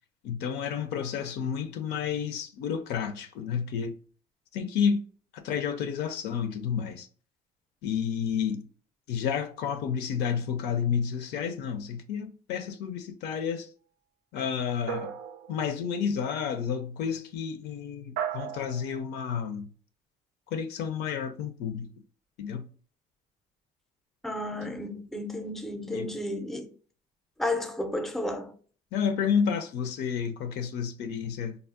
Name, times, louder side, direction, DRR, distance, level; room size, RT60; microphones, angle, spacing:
voice 1, 0.2-3.9 4.5-5.0 5.3-7.1 7.8-8.6 9.1-13.7 14.3-15.1 15.5-19.7 20.5-21.9 22.4-22.7 25.9-26.1 28.9-31.6, left 7 dB, 85° left, 0.5 m, -30 dB
sound 1, 14.9-15.9 18.2-19.0, right 9 dB, 85° right, 0.5 m, -35 dB
voice 2, 24.2-26.7 27.4-28.5, left 1 dB, ahead, 0.4 m, -32 dB
3.5 x 2.0 x 2.4 m
cardioid pair, 110°, 17 cm